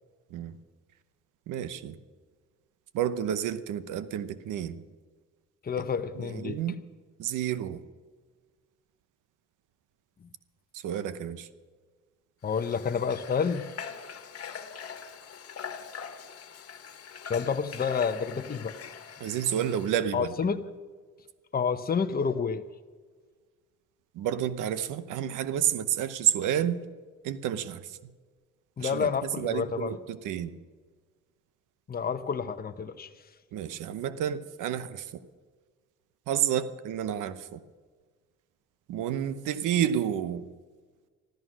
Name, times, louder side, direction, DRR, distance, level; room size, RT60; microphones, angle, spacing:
voice 1, 1.5-2.0 2.9-4.8 6.2-6.7 7.2-7.8 10.7-11.5 19.2-20.5 24.1-26.8 27.2-28.1 28.8-29.1 29.4-30.5 33.5-35.2 36.3-37.6 38.9-40.5, right 10 dB, 85° right, 14 dB, 0.9 m, -30 dB
voice 2, 5.6-6.6 12.4-13.7 17.3-18.7 20.1-20.6 21.5-22.6 28.8-30.0 31.9-33.1, left 6 dB, 30° left, 8 dB, 0.9 m, -29 dB
Water / Water tap faucet, 12.5-20.0, left 7 dB, 50° left, 1.6 m, -42 dB
14.5 x 13.0 x 6.1 m, 1.5 s
cardioid pair, 90°, 30 cm